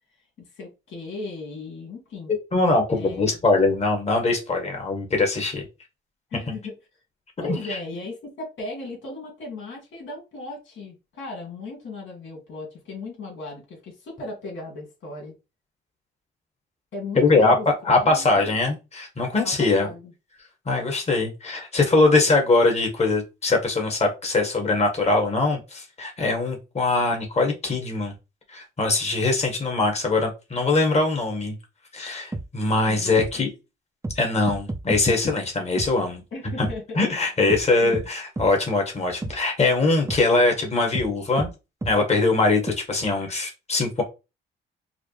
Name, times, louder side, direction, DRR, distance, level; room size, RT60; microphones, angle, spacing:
voice 1, 0.6-2.3 2.9-3.3 6.3-6.7 7.4-15.3 16.9-18.6 19.6-20.1 32.9-33.5 36.3-37.0 37.8-38.1, left 3 dB, 75° left, 2.2 m, -37 dB
voice 2, 2.5-5.6 7.7-7.8 17.1-17.5 17.8-19.9 20.6-28.1 28.5-31.5 31.9-33.5 34.2-36.2 37.0-41.5 41.8-44.0, left 3 dB, 35° left, 1.6 m, -22 dB
sound 1, 32.3-32.5 33.2-33.3 34.0-34.2 34.5-35.0 35.8-35.9 36.6-36.8 37.5-37.6 37.9-38.1 38.4-38.5 39.2-39.4 40.1-40.2 40.9-41.1 41.4-41.5 41.8-41.9 42.7-42.8, right 2 dB, 15° right, 0.5 m, -30 dB
4.9 x 2.2 x 3.2 m
cardioid pair, 90°, 20 cm